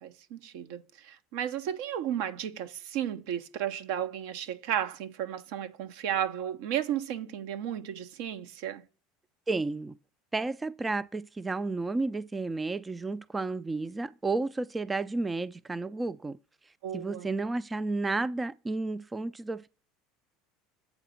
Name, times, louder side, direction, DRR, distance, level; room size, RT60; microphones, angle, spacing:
voice 1, 0.0-8.8 16.8-17.3, right 10 dB, 65° right, 0.7 m, -34 dB
voice 2, 9.5-9.9 10.3-16.4 16.9-19.7, right 3 dB, 15° right, 0.3 m, -32 dB
8.2 x 4.1 x 6.8 m
hypercardioid pair, 75°, 0 cm